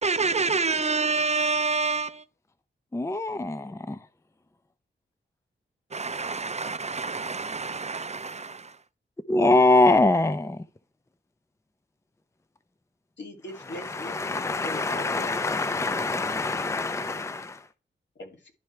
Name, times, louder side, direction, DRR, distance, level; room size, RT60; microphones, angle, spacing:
voice 1, 0.0-2.2 5.9-8.7, right 4 dB, 35° right, 0.6 m, -27 dB
voice 2, 2.9-4.0 9.3-10.6 13.9-17.6, left 2 dB, 15° left, 0.5 m, -24 dB
voice 3, 13.2-15.3 18.2-18.5, left 1 dB, 70° left, 2.7 m, -41 dB
11.5 x 4.6 x 3.3 m
cardioid pair, 65°, 19 cm